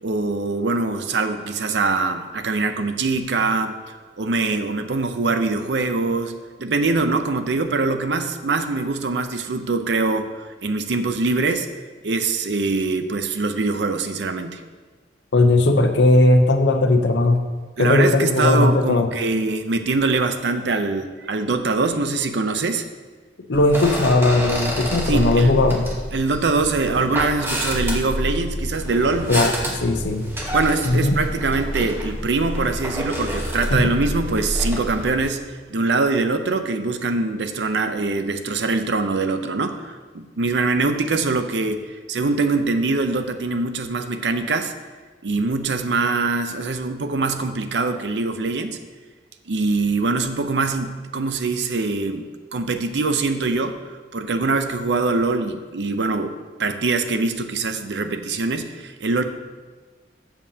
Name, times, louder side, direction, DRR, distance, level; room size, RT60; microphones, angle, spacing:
voice 1, 0.0-3.7 4.2-11.7 12.0-14.6 17.8-22.9 25.1-25.5 26.1-29.3 30.5-44.7 45.2-48.8 49.5-52.3 52.5-53.8 54.1-59.2, right 3 dB, 70° right, 8 dB, 0.6 m, -23 dB
voice 2, 15.3-17.4 17.8-19.1 23.5-25.9 29.3-30.3 30.8-31.2 33.7-33.9, left 2 dB, 75° left, 6 dB, 0.7 m, -17 dB
sound 1, 23.5-35.3, equal, 15° right, 1.1 m, -28 dB
12.5 x 7.1 x 2.8 m, 1.4 s
head